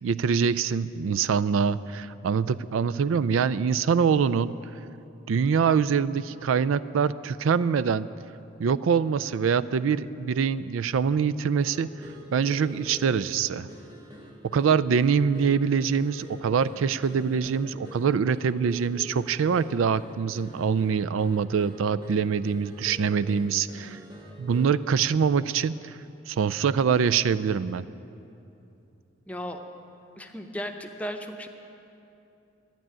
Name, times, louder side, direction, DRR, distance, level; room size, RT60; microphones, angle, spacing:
voice 1, 0.0-4.5 5.3-8.1 8.6-11.9 12.3-13.7 14.5-24.0 24.4-26.0 26.3-27.9, right 6 dB, 85° right, 15 dB, 0.4 m, -24 dB
sound 1, 11.6-24.9, equal, 25° right, 1.6 m, -45 dB
voice 2, 29.3-29.6 30.2-31.5, equal, 5° left, 4 dB, 0.7 m, -35 dB
12.0 x 11.0 x 8.8 m, 2.8 s
head